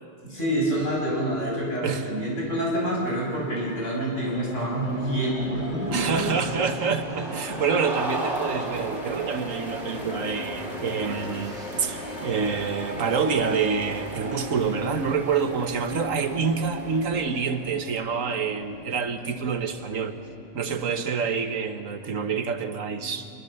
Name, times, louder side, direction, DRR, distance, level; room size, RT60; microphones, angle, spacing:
voice 1, 0.2-6.3 22.9-23.1, right 1 dB, 75° left, -3 dB, 6.9 m, -27 dB
sound 1, 2.4-18.0, right 2 dB, 60° right, 3.4 m, -39 dB
sound 2, 4.1-22.3, left 1 dB, 50° left, 2.9 m, -37 dB
voice 2, 5.9-20.1 20.5-23.3, right 6 dB, 90° right, 8 dB, 1.6 m, -27 dB
26.5 x 20.5 x 6.9 m, 2.4 s
omnidirectional pair, 1.3 m